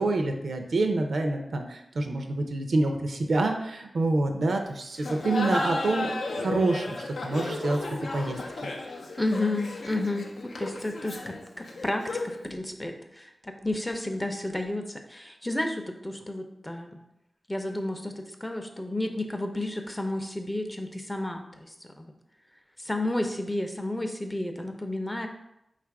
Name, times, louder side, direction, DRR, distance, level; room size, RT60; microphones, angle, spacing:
voice 1, 0.0-6.1 6.4-7.8 8.1-8.4, right 2 dB, 85° right, 4 dB, 0.5 m, -27 dB
Laughter, 5.0-12.4, left 2 dB, 90° left, 0.5 m, -34 dB
voice 2, 9.2-17.0 17.5-22.1 22.8-25.3, left 1 dB, 15° left, 5 dB, 0.5 m, -32 dB
3.9 x 2.4 x 4.6 m, 0.85 s
wide cardioid pair, 80°, 0 cm